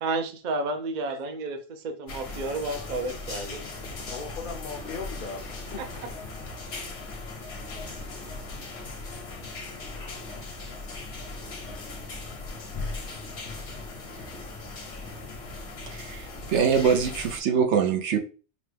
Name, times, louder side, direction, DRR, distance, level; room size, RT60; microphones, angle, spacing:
voice 1, 0.0-3.6, right 2 dB, 50° right, 6 dB, 0.6 m, -31 dB
sound 1, 2.1-17.4, left 3 dB, 70° left, 1.2 m, -38 dB
voice 2, 3.7-6.1, left 4 dB, 55° left, -1 dB, 0.7 m, -39 dB
voice 3, 15.9-18.2, right 6 dB, 80° right, 3 dB, 1.0 m, -24 dB
5.1 x 2.2 x 3.2 m, 0.36 s
omnidirectional pair, 1.2 m